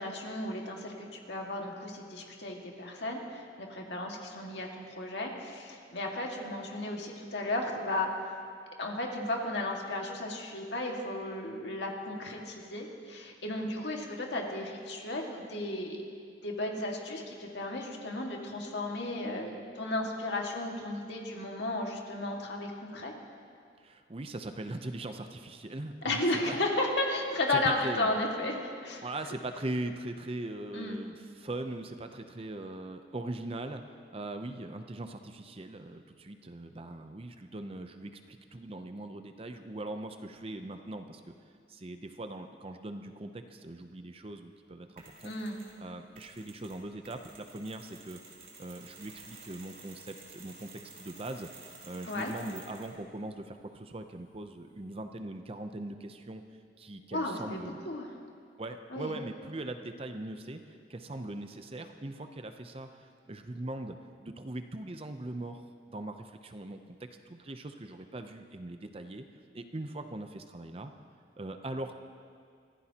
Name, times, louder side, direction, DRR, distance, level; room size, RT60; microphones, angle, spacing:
voice 1, 0.0-8.1 8.8-16.0 16.4-23.1 26.0-29.1 30.7-31.0 45.2-45.6 52.1-52.3 57.1-58.1 58.9-59.2, left 2 dB, 70° left, 0 dB, 2.0 m, -34 dB
voice 2, 23.8-26.6 27.5-28.1 29.0-41.3 41.7-45.3 45.8-48.2 48.6-51.5 51.8-56.4 56.8-57.9 58.6-69.2 69.5-70.9 71.4-71.9, right 2 dB, 30° right, 7 dB, 0.6 m, -41 dB
Mechanisms, 45.0-45.8 46.1-53.0, right 4 dB, 50° right, 2.9 m, -52 dB
24.0 x 15.5 x 2.9 m, 2.2 s
head